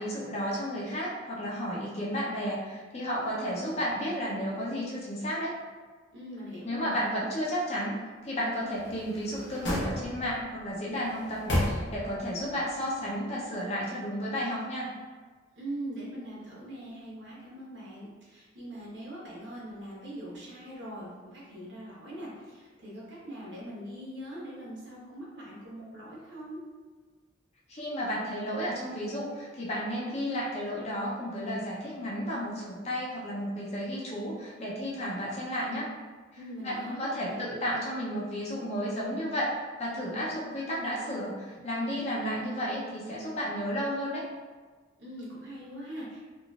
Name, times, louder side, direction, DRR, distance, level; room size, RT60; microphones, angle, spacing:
voice 1, 0.0-5.5 6.6-8.0 8.2-14.9 27.7-35.9 36.6-44.2, equal, 35° left, -6 dB, 0.6 m, -32 dB
voice 2, 6.1-6.9 15.5-26.6 36.4-37.4 45.0-46.3, right 1 dB, 65° right, -6 dB, 1.1 m, -42 dB
sound 1, 8.8-10.5 11.0-12.3 12.7-12.8, left 1 dB, 65° left, 0.8 m, -32 dB
3.8 x 2.5 x 2.4 m, 1.4 s
head